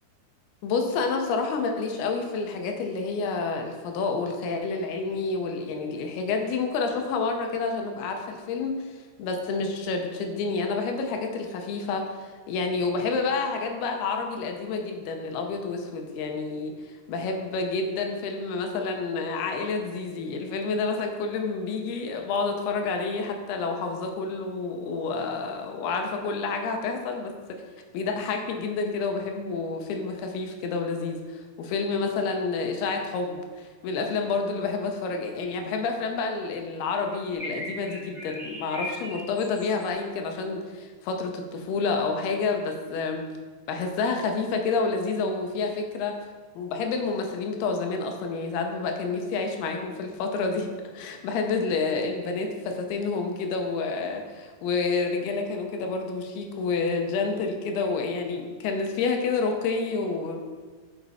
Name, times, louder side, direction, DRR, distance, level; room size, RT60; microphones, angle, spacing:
voice 1, 0.6-27.6 27.9-43.3 43.7-46.2 46.6-50.7 50.9-60.4, left 4 dB, 75° left, 3 dB, 2.6 m, -29 dB
sound 1, 37.3-39.8, left 1 dB, ahead, 0.7 m, -38 dB
9.3 x 5.8 x 4.2 m, 1.4 s
omnidirectional pair, 5.0 m